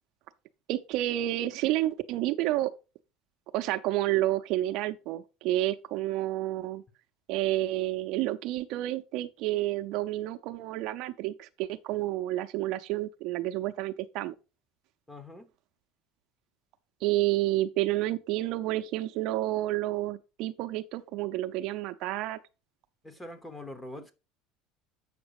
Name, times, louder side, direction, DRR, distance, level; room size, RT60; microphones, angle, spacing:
voice 1, 0.7-2.7 3.5-6.8 7.3-14.3 17.0-22.4, right 15 dB, 55° right, 0.6 m, -30 dB
voice 2, 15.1-15.5 23.0-24.1, left 1 dB, 10° left, 1.0 m, -43 dB
8.0 x 6.0 x 4.8 m
cardioid pair, 165°, 0 cm